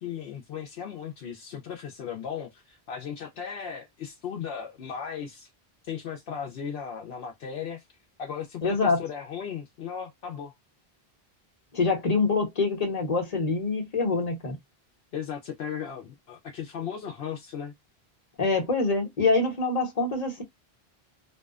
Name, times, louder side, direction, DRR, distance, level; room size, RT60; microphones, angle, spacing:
voice 1, 0.0-5.5 5.8-7.8 8.2-10.5 15.1-17.7, left 7 dB, 75° left, 0.8 m, -36 dB
voice 2, 8.6-9.0 11.7-14.6 18.4-20.4, left 3 dB, 40° left, 1.0 m, -25 dB
2.6 x 2.1 x 2.3 m
omnidirectional pair, 1.0 m